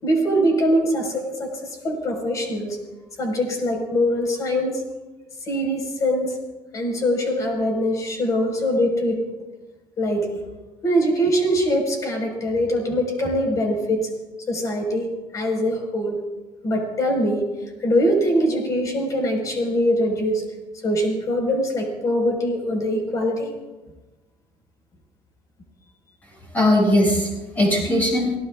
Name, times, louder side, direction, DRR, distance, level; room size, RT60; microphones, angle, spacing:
voice 1, 0.0-2.8 3.2-4.8 5.4-6.4 6.7-9.2 10.0-10.4 10.8-14.0 14.5-15.1 15.3-16.2 16.6-17.4 17.8-20.4 20.8-23.5, equal, 35° left, 2 dB, 4.8 m, -22 dB
voice 2, 26.5-28.4, left 1 dB, 15° left, -4 dB, 6.9 m, -19 dB
28.0 x 18.0 x 2.4 m, 1.2 s
cardioid pair, 160°, 10 cm